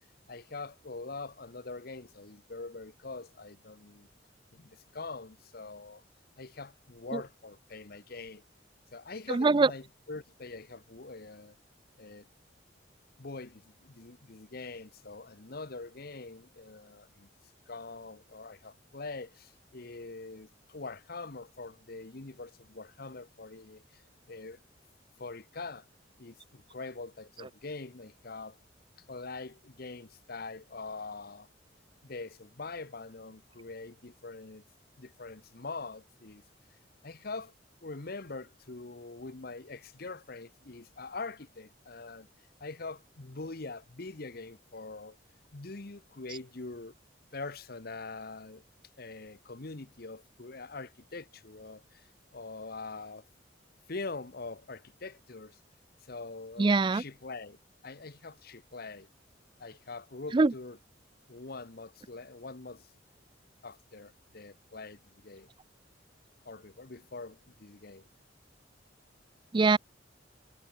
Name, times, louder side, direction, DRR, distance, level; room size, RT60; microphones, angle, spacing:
voice 1, 0.3-4.1 4.5-6.0 6.4-8.4 8.9-11.6 12.0-12.3 13.2-17.3 17.7-24.0 24.3-24.6 25.2-25.9 26.2-28.6 29.1-31.5 32.0-34.6 35.0-36.4 37.0-37.5 37.8-42.3 42.6-45.2 45.5-46.9 47.3-48.6 49.0-52.1 52.3-53.2 53.9-55.6 56.1-57.6 57.8-59.1 59.6-60.8 61.3-62.9 63.6-65.5 66.4-68.1, left 3 dB, 55° left, 1.1 m, -43 dB
voice 2, 9.3-9.7 56.6-57.0 60.3-60.5 69.5-69.8, right 3 dB, 25° right, 0.4 m, -23 dB
head